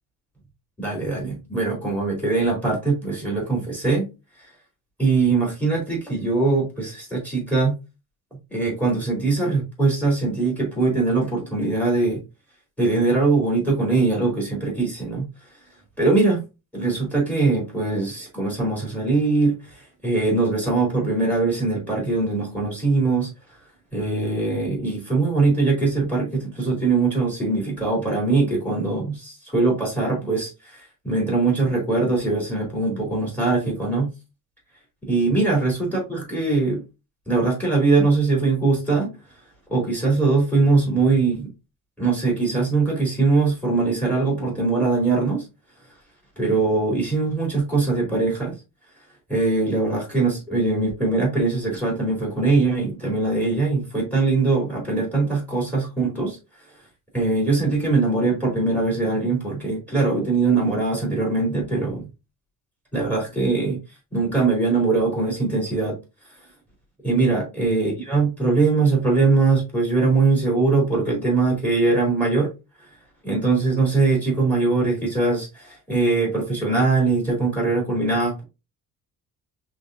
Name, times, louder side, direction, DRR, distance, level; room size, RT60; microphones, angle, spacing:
voice 1, 0.8-4.0 5.0-7.7 8.5-12.2 12.8-15.3 16.0-16.4 16.7-23.3 23.9-34.1 35.1-36.8 37.3-39.1 39.7-41.5 42.0-45.4 46.4-48.5 49.3-56.4 57.1-62.1 62.9-63.8 64.1-66.0 67.0-72.5 73.2-78.4, right 3 dB, 5° left, 0 dB, 2.7 m, -21 dB
5.2 x 3.6 x 2.6 m, 0.26 s
cardioid pair, 140°, 31 cm